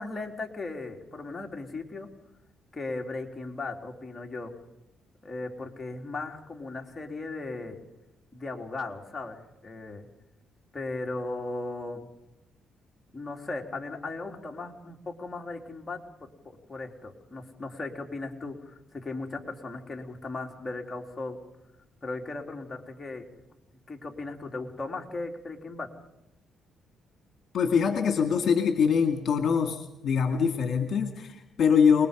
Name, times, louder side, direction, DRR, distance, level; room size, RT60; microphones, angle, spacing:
voice 1, 0.0-2.1 2.7-4.5 5.2-7.8 8.3-10.1 10.7-12.1 13.1-21.4 22.0-23.3 23.9-25.9, left 3 dB, 25° left, 2 dB, 3.6 m, -37 dB
voice 2, 27.5-32.1, left 6 dB, 60° left, 5 dB, 2.2 m, -24 dB
28.5 x 21.0 x 5.3 m, 0.89 s
cardioid pair, 90°, 0 cm